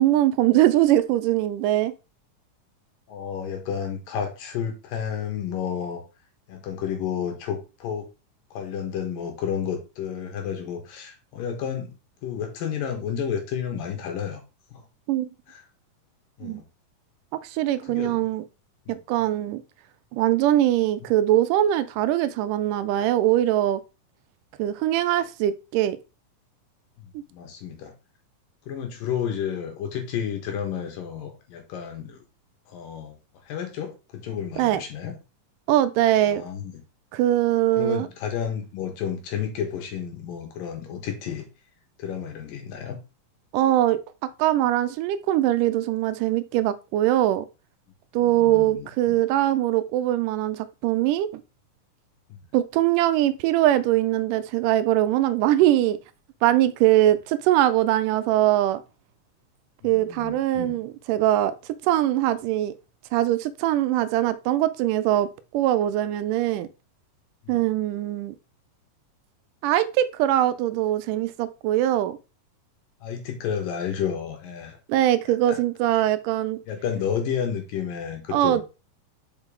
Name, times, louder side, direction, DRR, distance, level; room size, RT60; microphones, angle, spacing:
voice 1, 0.0-1.9 15.1-15.3 16.4-16.6 17.4-18.4 18.9-19.6 20.1-23.8 24.6-26.0 34.6-34.8 35.7-36.4 37.1-38.1 43.5-44.0 44.4-47.5 48.1-51.4 52.5-56.0 56.4-58.8 59.8-61.5 61.8-62.7 63.1-65.3 65.5-66.7 67.5-68.3 69.6-72.2 74.9-76.6 78.3-78.6, right 13 dB, 80° right, 2.0 m, -22 dB
voice 2, 3.1-6.0 6.5-8.1 8.5-12.0 12.2-14.4 14.7-14.8 15.5-15.6 16.4-16.7 17.9-18.2 18.9-19.0 27.0-27.9 28.7-32.2 32.7-33.2 33.5-35.1 36.2-36.8 37.8-41.5 42.0-43.0 48.2-49.2 52.3-52.4 59.8-60.8 67.4-67.6 73.0-74.8 75.5-75.6 76.7-78.6, left 8 dB, 90° left, 3.1 m, -31 dB
5.9 x 5.2 x 3.6 m
omnidirectional pair, 3.9 m